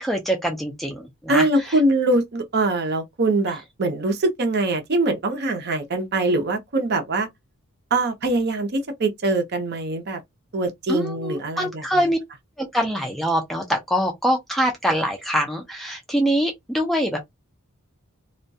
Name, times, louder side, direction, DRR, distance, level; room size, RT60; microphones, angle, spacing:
voice 1, 0.0-1.4 10.9-12.2 12.6-17.2, equal, ahead, 0.4 m, -24 dB
voice 2, 1.3-7.3 7.9-10.2 10.5-12.1, right 2 dB, 45° right, 0.6 m, -23 dB
2.2 x 2.1 x 2.6 m
head